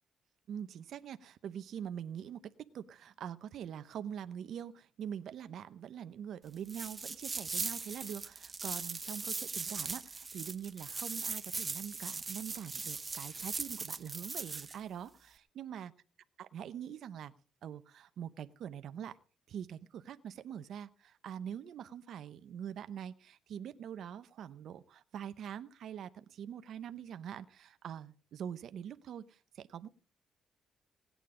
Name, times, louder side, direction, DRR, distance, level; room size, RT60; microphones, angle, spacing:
voice 1, 0.5-2.4 2.7-15.9 16.4-17.3 17.6-19.2 19.5-29.9, right 9 dB, 70° right, 12 dB, 0.8 m, -44 dB
sound 1, 6.6-14.8, right 4 dB, 30° right, 0.9 m, -39 dB
18.5 x 9.2 x 5.0 m, 0.38 s
cardioid pair, 90°, 0 cm